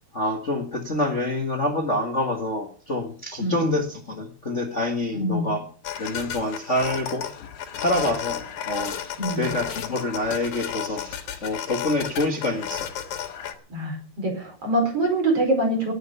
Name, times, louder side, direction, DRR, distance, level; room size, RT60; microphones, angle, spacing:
voice 1, 0.1-5.6 6.0-7.3 7.8-8.9 9.3-11.2 11.4-12.9, left 1 dB, 90° left, 3 dB, 0.6 m, -26 dB
voice 2, 3.4-3.8 5.1-5.5 9.2-9.5 13.7-15.9, right 1 dB, 35° right, 2 dB, 5.5 m, -24 dB
sound 1, 5.8-13.5, left 9 dB, 60° left, 2.5 m, -33 dB
18.5 x 7.9 x 6.8 m, 0.42 s
omnidirectional pair, 4.5 m